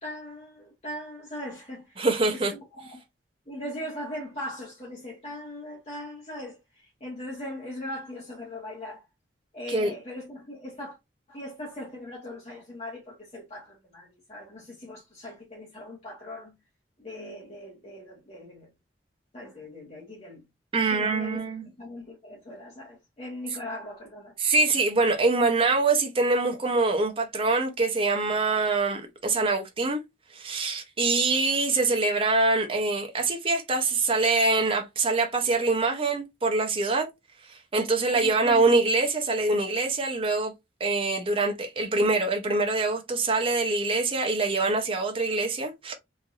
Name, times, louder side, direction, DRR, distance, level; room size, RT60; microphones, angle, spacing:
voice 1, 0.0-3.0 3.5-9.0 9.5-11.0 11.3-16.5 17.0-18.7 19.3-20.4 20.8-24.3 38.1-38.6, left 1 dB, 35° left, 1.0 m, -40 dB
voice 2, 2.0-2.5 9.7-9.9 20.7-21.7 24.4-30.0 30.3-37.1 37.5-40.5 40.8-45.9, right 3 dB, 30° right, 0.6 m, -24 dB
3.1 x 2.6 x 2.4 m
head